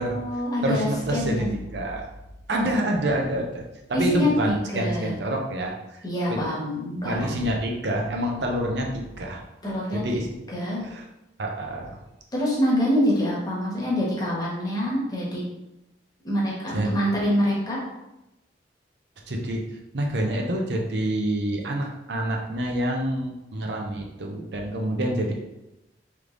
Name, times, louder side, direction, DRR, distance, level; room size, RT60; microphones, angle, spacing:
voice 1, 0.0-1.5 2.5-2.8 3.9-5.2 6.0-7.3 9.6-10.0 10.5-10.8 12.3-15.4 16.2-17.8, equal, 20° left, -5 dB, 1.3 m, -25 dB
voice 2, 0.6-2.1 2.5-3.6 3.9-6.0 6.3-6.5 7.0-9.4 9.9-10.3 10.8-11.0 11.4-12.0 16.7-16.9 19.3-19.6 19.9-25.4, right 1 dB, 70° right, 1 dB, 0.6 m, -27 dB
3.3 x 3.3 x 3.8 m, 0.94 s
head